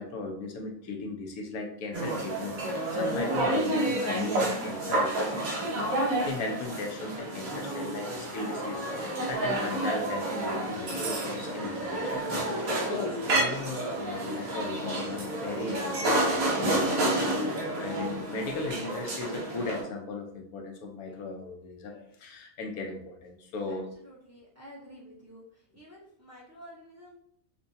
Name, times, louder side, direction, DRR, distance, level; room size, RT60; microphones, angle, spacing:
voice 1, 0.0-23.9, left 3 dB, 85° left, 2 dB, 1.2 m, -37 dB
sound 1, 1.9-19.8, right 1 dB, 80° right, 1.4 m, -30 dB
voice 2, 24.0-25.4 25.7-27.2, equal, 15° right, -5 dB, 0.7 m, -50 dB
5.7 x 2.2 x 2.6 m, 0.68 s
omnidirectional pair, 1.5 m